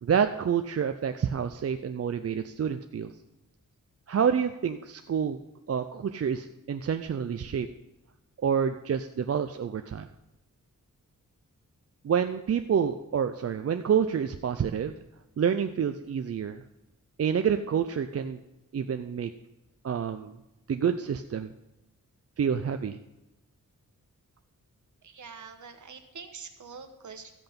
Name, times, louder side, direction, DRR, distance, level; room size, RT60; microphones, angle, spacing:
voice 1, 0.0-3.1 4.1-5.4 5.7-7.7 8.4-10.1 12.0-14.9 15.4-16.6 17.2-18.4 18.7-19.3 19.8-20.3 20.7-21.5 22.4-23.0, right 7 dB, 50° right, 7 dB, 0.5 m, -28 dB
voice 2, 25.0-27.4, right 5 dB, 65° right, 6 dB, 1.3 m, -45 dB
13.5 x 7.9 x 5.2 m, 0.95 s
wide cardioid pair, 140°, 32 cm